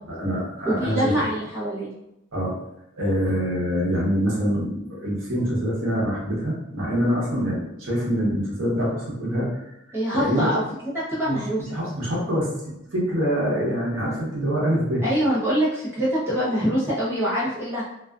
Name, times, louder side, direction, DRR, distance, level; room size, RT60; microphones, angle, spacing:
voice 1, 0.1-1.3 2.3-2.5 2.9-10.5 11.2-15.0, equal, 75° right, -5 dB, 0.9 m, -25 dB
voice 2, 0.6-1.9 9.9-10.6 10.9-11.7 15.0-17.8, equal, 10° right, -10 dB, 0.7 m, -24 dB
2.4 x 2.3 x 2.3 m, 0.86 s
head